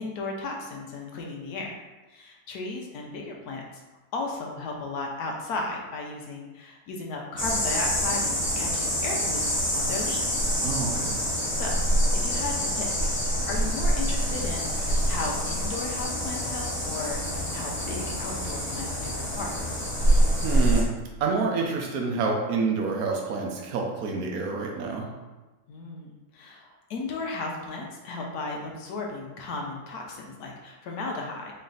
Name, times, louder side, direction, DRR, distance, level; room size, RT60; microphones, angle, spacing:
voice 1, 0.0-1.8 2.1-3.6 4.1-10.4 11.5-11.8 12.1-13.1 13.5-19.5 25.7-31.5, left 3 dB, 90° left, 0 dB, 1.3 m, -35 dB
sound 1, 7.4-20.8, equal, 10° left, 0.9 m, -26 dB
voice 2, 10.6-11.2 20.1-20.9 21.2-25.1, right 4 dB, 70° right, 0 dB, 1.2 m, -28 dB
4.0 x 3.3 x 3.9 m, 1.2 s
omnidirectional pair, 1.6 m